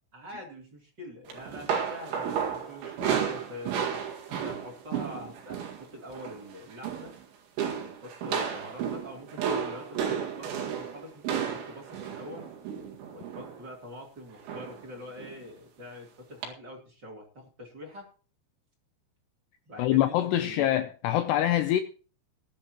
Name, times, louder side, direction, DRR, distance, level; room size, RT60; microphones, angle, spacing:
voice 1, 0.1-4.0 4.3-7.1 8.0-12.5 13.1-18.1 19.7-20.7, left 1 dB, 25° right, 3.1 m, -45 dB
sound 1, 1.3-5.8 6.1-6.4 6.7-7.2 7.6-13.6 14.5-14.8 15.2-15.4 16.4-16.5, right 7 dB, 80° right, 4.5 m, -33 dB
voice 2, 19.8-21.8, left 12 dB, 80° left, 2.6 m, -25 dB
19.5 x 11.5 x 3.0 m
omnidirectional pair, 5.4 m